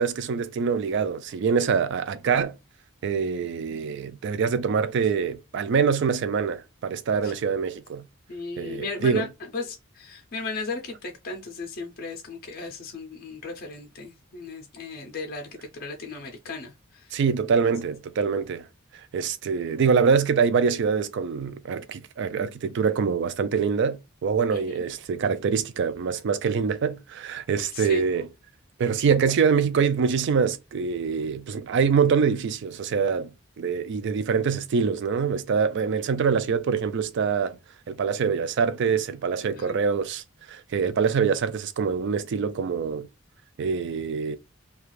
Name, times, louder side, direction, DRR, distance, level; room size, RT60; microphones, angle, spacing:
voice 1, 0.0-2.5 3.0-8.0 8.6-9.3 17.1-18.7 19.1-28.3 28.8-33.3 33.6-37.6 37.9-40.2 40.5-43.1 43.6-44.4, right 6 dB, 55° right, 0.3 m, -24 dB
voice 2, 8.3-9.3 9.5-15.4 15.7-17.1 24.5-24.8 27.7-28.1 39.5-39.8, left 3 dB, 45° left, 0.5 m, -36 dB
2.4 x 2.3 x 3.0 m
head